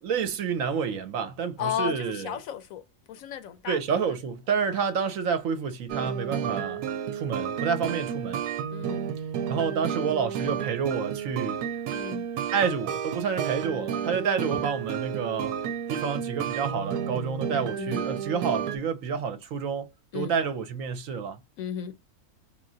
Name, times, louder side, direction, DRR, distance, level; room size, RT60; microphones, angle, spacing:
voice 1, 0.0-2.3 3.7-6.8 7.1-8.4 9.5-11.6 12.5-15.5 15.9-21.4, right 6 dB, 65° right, 1.0 m, -29 dB
voice 2, 1.6-3.8 4.7-4.9 7.8-8.0 8.7-9.1 11.9-12.3 17.8-18.1 20.1-20.3 21.6-21.9, left 9 dB, 70° left, 0.9 m, -34 dB
sound 1, 5.9-18.8, right 8 dB, 90° right, 1.1 m, -31 dB
3.8 x 3.1 x 2.6 m
omnidirectional pair, 1.6 m